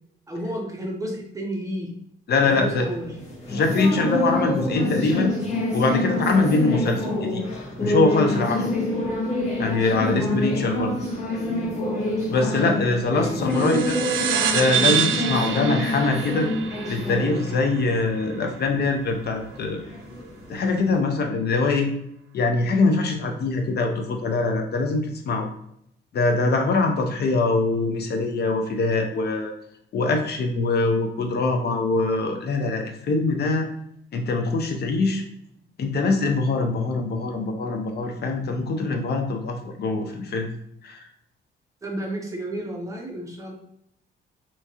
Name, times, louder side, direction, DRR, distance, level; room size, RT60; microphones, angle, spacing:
voice 1, 0.3-1.9 2.4-3.2 11.4-11.8 13.2-14.1 41.8-43.5, right 1 dB, 15° right, 0 dB, 1.0 m, -32 dB
voice 2, 2.3-2.8 3.5-5.3 5.7-7.5 7.8-8.8 9.6-10.9 12.3-13.9 14.5-16.5 16.9-19.8 20.5-21.9 22.3-25.5 26.1-29.5 29.9-33.7 34.1-35.2 35.8-40.5 40.8-41.1, left 3 dB, 55° left, 4 dB, 0.7 m, -23 dB
sound 1, 2.6-21.0, left 1 dB, 35° left, 1.4 m, -27 dB
sound 2, 13.5-18.4, right 8 dB, 80° right, 0.5 m, -27 dB
3.4 x 3.0 x 2.9 m, 0.71 s
cardioid pair, 90°, 20 cm